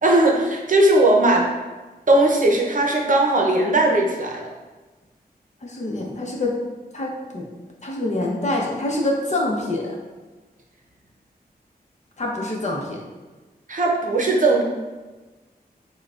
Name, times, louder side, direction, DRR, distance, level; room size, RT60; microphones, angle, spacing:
voice 1, 0.0-1.5 2.1-4.4 13.7-14.6, right 2 dB, 55° right, 0 dB, 0.7 m, -18 dB
voice 2, 5.6-6.6 6.9-7.4 7.8-9.9 12.2-13.0, left 2 dB, 45° left, -2 dB, 0.8 m, -25 dB
6.7 x 2.3 x 2.5 m, 1.2 s
wide cardioid pair, 95°, 16 cm